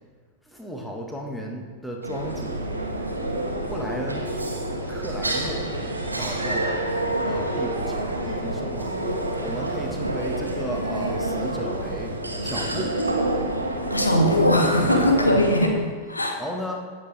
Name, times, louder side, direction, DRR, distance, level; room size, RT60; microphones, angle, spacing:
voice 1, 0.5-2.6 3.7-4.3 4.9-5.7 6.2-6.8 7.2-9.0 9.4-12.2 12.4-12.9 15.3-15.5 16.4-16.8, equal, 5° left, 0 dB, 1.7 m, -34 dB
sound 1, 2.0-15.6, right 1 dB, 80° right, 1.4 m, -27 dB
voice 2, 13.9-15.7 16.1-16.4, left 1 dB, 80° left, 2 dB, 1.4 m, -20 dB
17.0 x 7.9 x 3.5 m, 1.6 s
figure-of-eight pair, 90°, 0 cm